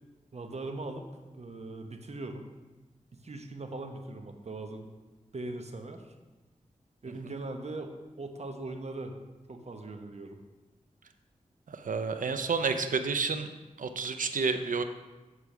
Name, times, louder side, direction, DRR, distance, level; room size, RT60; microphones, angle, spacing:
voice 1, 0.3-1.0 1.3-2.5 3.1-4.9 5.3-6.1 7.0-7.9 8.2-9.1 9.5-10.4, right 2 dB, 55° right, 4 dB, 1.1 m, -40 dB
voice 2, 11.8-13.5 13.8-14.8, right 5 dB, 85° right, 8 dB, 0.6 m, -29 dB
8.4 x 4.8 x 5.9 m, 1.2 s
cardioid pair, 50°, 13 cm